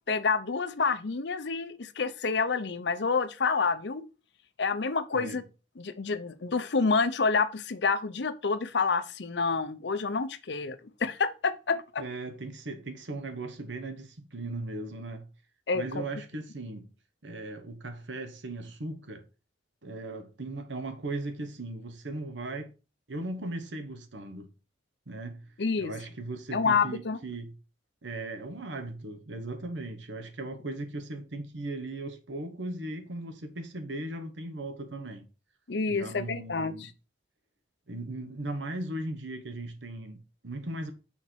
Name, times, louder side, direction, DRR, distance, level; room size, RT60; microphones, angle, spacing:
voice 1, 0.1-4.0 4.6-5.4 5.8-12.0 15.7-16.1 25.6-25.9 26.5-27.2 35.7-36.9, left 4 dB, 70° left, 0.7 m, -28 dB
voice 2, 12.0-15.3 15.7-16.9 17.2-19.2 19.8-22.7 23.1-24.5 25.1-25.5 25.8-27.5 28.0-35.3 35.9-36.9 37.9-40.9, right 2 dB, 85° right, 1.1 m, -38 dB
5.8 x 4.3 x 4.5 m
head